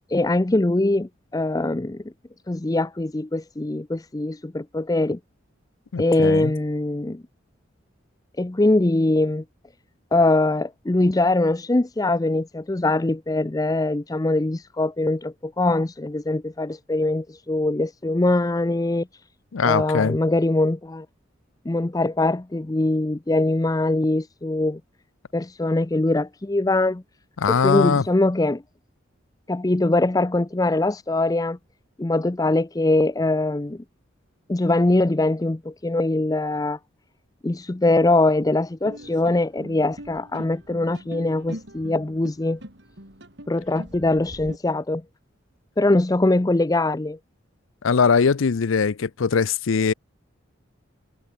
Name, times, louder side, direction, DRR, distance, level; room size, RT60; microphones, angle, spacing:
voice 1, 0.1-2.1 2.5-5.2 6.0-7.2 8.4-9.4 10.1-19.1 19.6-21.1 21.7-24.8 25.3-27.0 27.5-28.6 29.5-31.6 32.0-33.8 34.5-36.8 37.4-42.6 43.5-45.0 45.8-47.2, left 2 dB, 20° left, 0.5 m, -22 dB
voice 2, 5.9-6.5 19.5-20.2 27.4-28.0 47.8-49.9, left 5 dB, 85° left, 0.6 m, -21 dB
sound 1, 38.9-44.6, equal, 60° right, 7.4 m, -42 dB
head